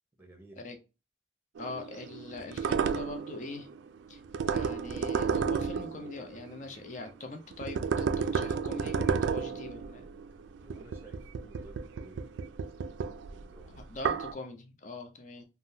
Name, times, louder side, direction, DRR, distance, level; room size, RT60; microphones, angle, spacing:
voice 1, 0.2-0.6 10.6-12.3 13.3-13.8, right 2 dB, 10° right, 0.9 m, -54 dB
voice 2, 1.6-3.7 4.1-10.1 13.9-15.4, left 3 dB, 40° left, 0.6 m, -42 dB
sound 1, 1.6-7.1 7.5-14.3, right 6 dB, 85° right, 0.3 m, -32 dB
3.5 x 2.2 x 2.6 m
head